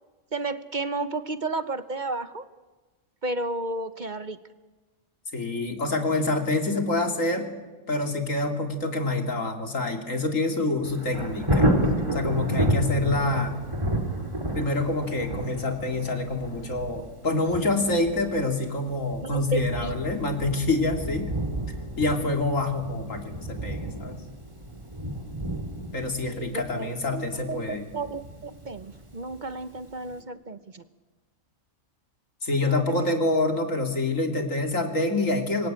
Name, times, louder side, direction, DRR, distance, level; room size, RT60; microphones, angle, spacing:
voice 1, 0.3-2.5 3.2-4.4 19.2-19.9 26.2-30.8 32.7-33.1, right 2 dB, 40° right, 11 dB, 1.0 m, -33 dB
voice 2, 5.3-7.5 7.9-11.7 12.1-13.5 14.5-21.3 22.0-24.2 25.9-27.8 32.4-35.7, left 2 dB, 85° left, 4 dB, 3.2 m, -26 dB
Thunder, 10.8-29.6 30.1-30.2, right 1 dB, 25° right, 2.9 m, -31 dB
26.5 x 22.0 x 9.0 m, 1.3 s
omnidirectional pair, 1.3 m